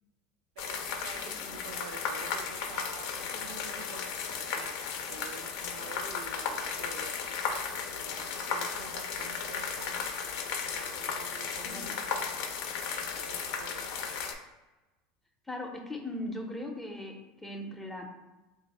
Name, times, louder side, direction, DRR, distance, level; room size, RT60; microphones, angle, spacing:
sound 1, 0.6-14.3, left 6 dB, 70° left, 0.5 m, -35 dB
voice 1, 0.6-10.1 10.6-12.3 13.2-14.1, right 6 dB, 85° right, 6 dB, 0.4 m, -48 dB
voice 2, 1.3-1.6 11.6-12.0 15.5-18.1, left 1 dB, 5° left, 2 dB, 0.6 m, -39 dB
3.1 x 2.5 x 4.1 m, 1.1 s
supercardioid pair, 130°, 3 cm